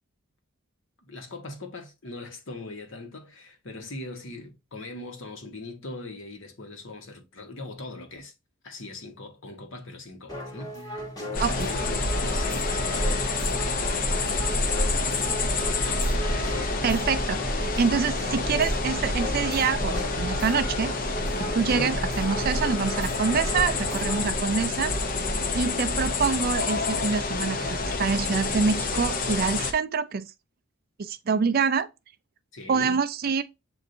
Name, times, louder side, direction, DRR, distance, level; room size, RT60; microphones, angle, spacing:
voice 1, 1.0-8.3 8.6-15.2 15.5-16.1 16.5-17.0 21.6-22.0 32.5-33.0, left 2 dB, 60° left, 1.1 m, -41 dB
sound 1, 10.3-24.3, equal, 15° left, 1.1 m, -36 dB
sound 2, 11.3-29.7, left 2 dB, 40° left, 0.6 m, -28 dB
voice 2, 16.8-17.4 17.8-25.0 25.5-30.3 31.0-31.9 32.7-33.4, right 5 dB, 45° right, 0.3 m, -26 dB
7.7 x 2.6 x 2.6 m
head